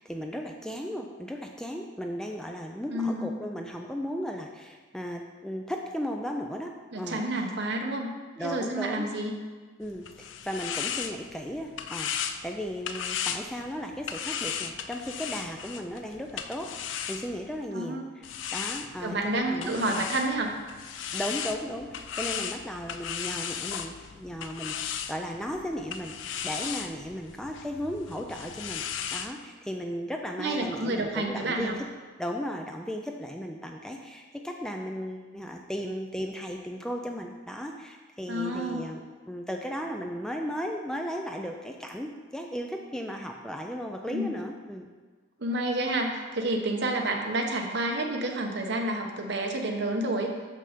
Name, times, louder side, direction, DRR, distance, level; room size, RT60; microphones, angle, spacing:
voice 1, 0.0-7.2 8.4-9.2 9.8-12.1 12.4-16.7 17.1-20.1 21.1-31.9 32.2-44.9, equal, 5° left, 2 dB, 0.3 m, -36 dB
voice 2, 2.9-3.3 6.9-8.1 8.4-9.3 17.7-18.0 19.0-20.5 30.4-31.8 38.3-38.8 44.1-44.3 45.4-50.3, right 1 dB, 60° right, 2 dB, 0.9 m, -29 dB
sound 1, 9.8-17.6 18.2-29.3, left 8 dB, 70° left, 0.4 m, -36 dB
6.4 x 5.5 x 5.0 m, 1.4 s
head